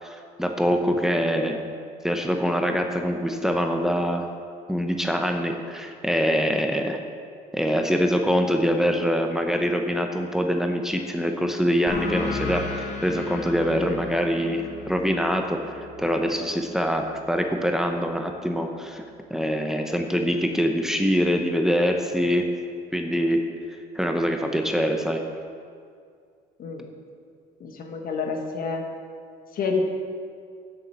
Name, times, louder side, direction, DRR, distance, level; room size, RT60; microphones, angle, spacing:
voice 1, 0.0-1.6 2.0-4.3 4.7-7.0 7.5-15.6 16.0-19.0 19.3-22.5 22.9-23.4 23.9-25.2, equal, 5° right, 3 dB, 1.0 m, -24 dB
voice 2, 8.7-9.0 26.6-26.9 27.6-28.8 29.5-29.9, left 4 dB, 60° left, 3 dB, 1.5 m, -29 dB
sound 1, 11.9-17.1, left 4 dB, 40° left, 1.8 m, -35 dB
7.6 x 6.9 x 7.7 m, 2.3 s
supercardioid pair, 80°, 17 cm